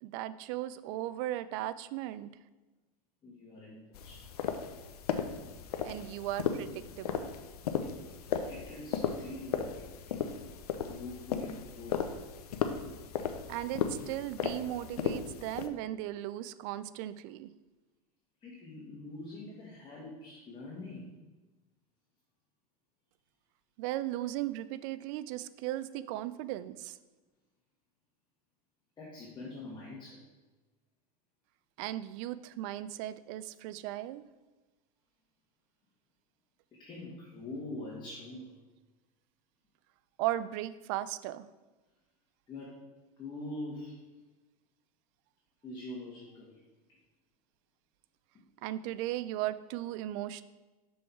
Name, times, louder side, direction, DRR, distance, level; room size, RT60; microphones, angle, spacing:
voice 1, 0.0-2.3 5.8-7.3 13.5-17.5 23.8-27.0 31.8-34.3 40.2-41.4 48.6-50.4, right 14 dB, 60° right, 15 dB, 0.4 m, -37 dB
voice 2, 3.2-4.2 8.2-10.2 10.8-12.0 14.9-15.1 18.4-21.2 24.2-24.6 25.9-26.0 29.0-30.2 36.8-38.6 42.5-42.8 43.2-44.0 45.6-46.6 46.9-47.0 48.3-48.4, left 2 dB, 25° left, -5 dB, 1.8 m, -44 dB
sound 1, 3.9-15.7, left 7 dB, 90° left, 0.7 m, -36 dB
6.4 x 5.5 x 4.4 m, 1.2 s
supercardioid pair, 115°, 19 cm